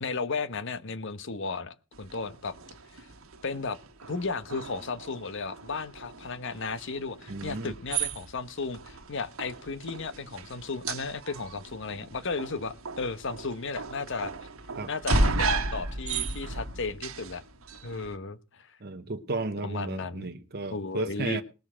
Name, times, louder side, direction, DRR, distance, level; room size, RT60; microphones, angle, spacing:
voice 1, 0.0-2.5 3.4-3.8 4.1-14.3 14.9-17.4 17.8-18.7 19.6-20.3 20.7-21.4, left 4 dB, 60° left, 1.1 m, -34 dB
sound 1, 1.9-18.2, right 3 dB, 80° right, 1.6 m, -34 dB
voice 2, 7.3-7.7 14.8-14.9 18.8-21.4, right 3 dB, 50° right, 0.9 m, -34 dB
19.5 x 6.6 x 6.2 m
head